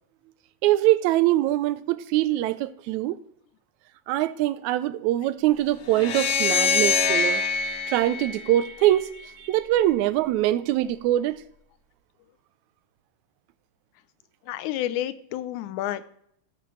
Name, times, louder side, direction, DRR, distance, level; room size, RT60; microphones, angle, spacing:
voice 1, 0.6-3.2 4.1-7.4 7.9-9.1 9.4-11.4, right 14 dB, 80° right, 1.9 m, -23 dB
sound 1, 5.9-9.2, left 5 dB, 65° left, 1.7 m, -25 dB
voice 2, 14.5-16.1, left 12 dB, 85° left, 2.0 m, -30 dB
15.5 x 7.0 x 3.1 m
omnidirectional pair, 3.4 m